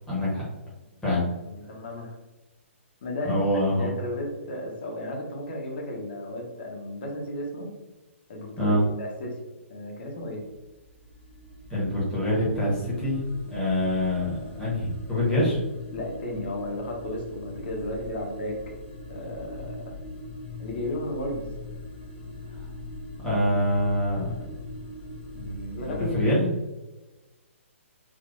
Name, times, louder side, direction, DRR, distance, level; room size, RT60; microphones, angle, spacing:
voice 1, 0.1-0.4 1.0-1.2 3.2-3.9 8.6-8.8 11.7-13.2 13.5-15.6 23.2-24.3 25.3-26.5, left 1 dB, 5° left, -8 dB, 1.3 m, -25 dB
voice 2, 0.9-1.2 1.4-2.1 3.0-3.4 3.7-7.7 8.3-9.4 9.7-10.4 15.9-18.7 19.1-20.0 20.6-21.5 25.7-26.4, left 1 dB, 45° left, 0 dB, 0.9 m, -34 dB
sound 1, 10.4-26.1, left 2 dB, 25° left, 0.9 m, -41 dB
3.6 x 2.7 x 2.5 m, 1.1 s
figure-of-eight pair, 125°, 7 cm